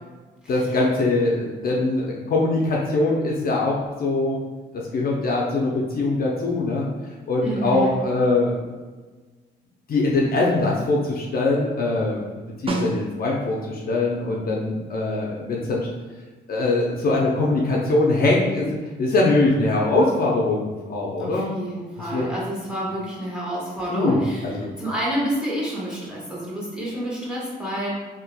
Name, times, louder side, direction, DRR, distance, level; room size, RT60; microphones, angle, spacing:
voice 1, 0.5-4.4 4.7-6.9 7.3-8.5 9.9-15.9 16.5-18.7 19.0-21.5 22.0-22.2 23.9-24.7, left 2 dB, 50° left, -3 dB, 0.6 m, -22 dB
voice 2, 7.4-7.9 21.2-27.9, right 1 dB, 5° right, -7 dB, 1.3 m, -29 dB
Snare drum, 12.7-13.6 18.0-18.1, right 1 dB, 30° right, 0.5 m, -29 dB
3.7 x 2.7 x 2.2 m, 1.3 s
cardioid pair, 90°, 20 cm